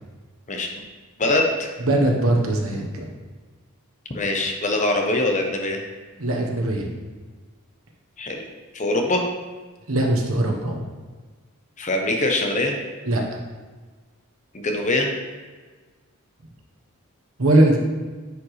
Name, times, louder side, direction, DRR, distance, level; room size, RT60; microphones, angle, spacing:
voice 1, 1.2-1.7 4.1-5.8 8.2-8.4 8.7-9.2 11.8-12.7 14.5-15.1, left 2 dB, 35° left, 2 dB, 0.8 m, -23 dB
voice 2, 1.8-3.1 6.2-6.9 9.9-10.8 13.0-13.2 17.4-17.8, right 1 dB, 65° right, 1 dB, 1.2 m, -20 dB
9.6 x 5.1 x 3.2 m, 1.4 s
head